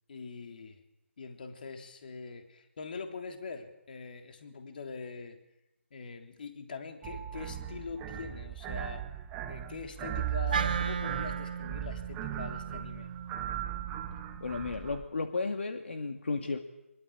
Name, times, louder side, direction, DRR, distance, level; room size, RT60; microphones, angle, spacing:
voice 1, 0.1-0.8 1.2-5.4 5.9-9.0 9.5-13.1, left 5 dB, 40° left, 5 dB, 3.4 m, -43 dB
sound 1, 7.0-15.1, right 11 dB, 10° right, 1.0 m, -37 dB
Wind instrument woodwind instrument, 10.5-14.8, right 6 dB, 35° right, 1.6 m, -37 dB
voice 2, 14.4-16.6, left 4 dB, 55° left, 6 dB, 2.5 m, -33 dB
25.5 x 22.5 x 8.7 m, 0.91 s
figure-of-eight pair, 165°, 8 cm